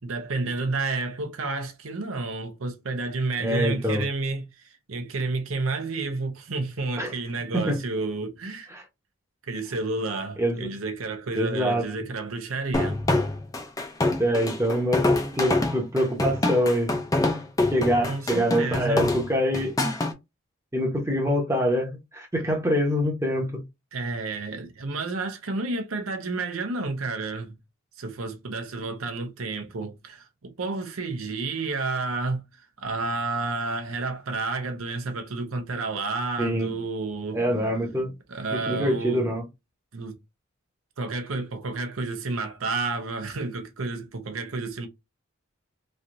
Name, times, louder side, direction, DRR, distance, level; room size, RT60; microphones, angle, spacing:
voice 1, 0.0-8.7 9.4-13.0 18.0-19.1 23.9-27.5 28.0-37.4 38.3-39.3 39.9-40.2 41.0-44.9, right 3 dB, 80° right, 0.7 m, -30 dB
voice 2, 3.4-4.0 7.0-7.1 7.5-7.8 8.7-8.8 10.4-10.7 11.3-11.8 14.2-15.0 15.4-16.9 17.7-19.7 20.7-23.6 36.4-36.7 37.3-38.1 38.5-39.4, equal, 15° right, 0.8 m, -25 dB
sound 1, 12.7-20.1, left 2 dB, 15° left, 0.5 m, -25 dB
3.2 x 2.7 x 2.5 m
head